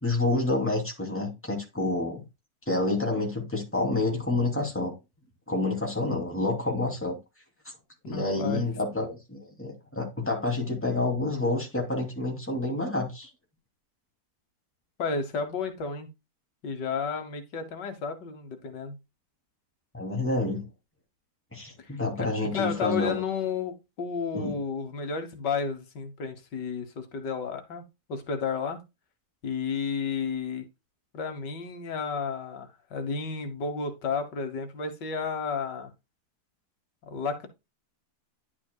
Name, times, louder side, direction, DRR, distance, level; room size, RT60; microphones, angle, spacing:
voice 1, 0.0-2.2 2.7-4.9 5.5-7.2 8.1-13.3 19.9-20.6 21.5-23.2 24.3-24.6, left 2 dB, 5° left, 2.7 m, -28 dB
voice 2, 8.1-8.6 15.0-16.1 16.6-19.0 21.8-27.8 28.1-28.8 29.4-30.6 31.1-35.9 37.1-37.5, left 5 dB, 85° left, 1.9 m, -32 dB
10.5 x 6.1 x 2.3 m
omnidirectional pair, 1.8 m